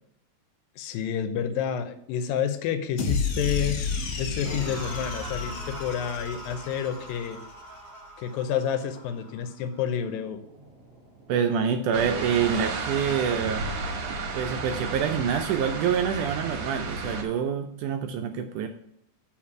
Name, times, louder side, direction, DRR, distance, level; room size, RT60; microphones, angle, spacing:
voice 1, 0.8-3.8 4.2-7.4 8.2-10.4, left 8 dB, 85° left, 9 dB, 2.5 m, -29 dB
sound 1, 3.0-7.3, left 5 dB, 65° left, 1.6 m, -31 dB
sound 2, 4.4-11.6, right 1 dB, 30° right, 2.0 m, -43 dB
voice 2, 11.3-13.7 14.3-18.7, right 7 dB, 80° right, 6 dB, 1.8 m, -26 dB
sound 3, 11.9-17.2, right 4 dB, 60° right, 2.0 m, -32 dB
7.2 x 5.1 x 6.0 m, 0.75 s
omnidirectional pair, 4.0 m